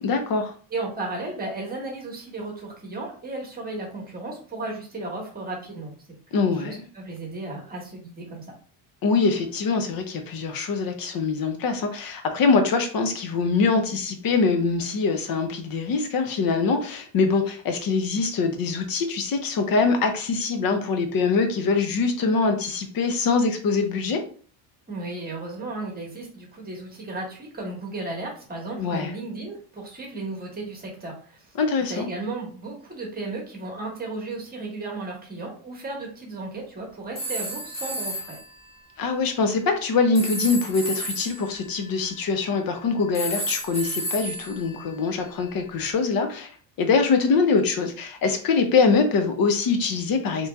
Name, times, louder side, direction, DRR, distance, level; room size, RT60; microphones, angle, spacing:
voice 1, 0.0-0.5 6.3-6.9 9.0-24.2 28.8-29.1 31.6-32.1 39.0-46.5 46.8-50.5, left 4 dB, 50° left, 5 dB, 0.8 m, -23 dB
voice 2, 0.7-5.9 6.3-8.4 24.9-31.5 31.9-38.4, right 2 dB, 20° right, -1 dB, 1.2 m, -34 dB
sound 1, 37.2-38.5 40.2-42.6 43.1-45.5, equal, 15° left, 1.0 m, -32 dB
3.1 x 2.6 x 3.4 m, 0.43 s
cardioid pair, 130°, 46 cm